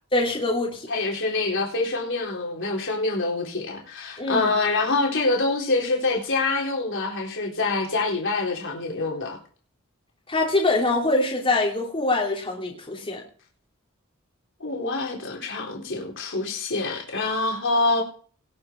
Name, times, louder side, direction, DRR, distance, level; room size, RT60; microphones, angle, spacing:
voice 1, 0.1-0.9 4.2-4.5 10.3-13.2, left 2 dB, 25° left, -3 dB, 3.1 m, -24 dB
voice 2, 0.9-9.4 14.6-18.0, left 3 dB, 60° left, -1 dB, 3.9 m, -25 dB
19.0 x 7.2 x 4.5 m, 0.41 s
head